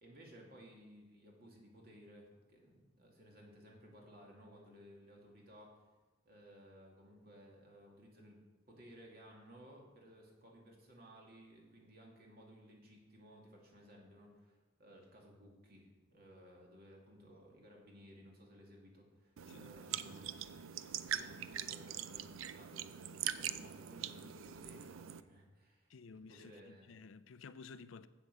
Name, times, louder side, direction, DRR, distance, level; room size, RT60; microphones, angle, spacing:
voice 1, 0.0-5.7 6.2-8.4 8.7-20.6 21.0-23.1 23.4-26.9, equal, 50° right, 2.4 m, -58 dB
sound 1, 19.4-25.2, right 10 dB, 80° right, 0.4 m, -43 dB
voice 2, 19.5-20.2 25.9-28.1, left 4 dB, 75° left, 0.4 m, -54 dB
8.1 x 8.0 x 6.7 m
head